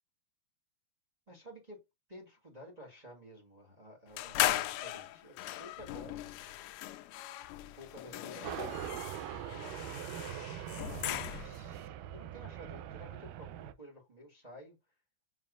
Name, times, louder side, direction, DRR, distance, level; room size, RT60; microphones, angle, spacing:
voice 1, 1.3-6.2 7.6-9.0 10.8-14.7, equal, 30° right, 0.7 m, -52 dB
sound 1, 4.2-11.7, left 14 dB, 80° left, 2.0 m, -38 dB
sound 2, 8.4-13.7, right 11 dB, 80° right, 2.2 m, -42 dB
7.2 x 5.5 x 2.5 m
omnidirectional pair, 4.0 m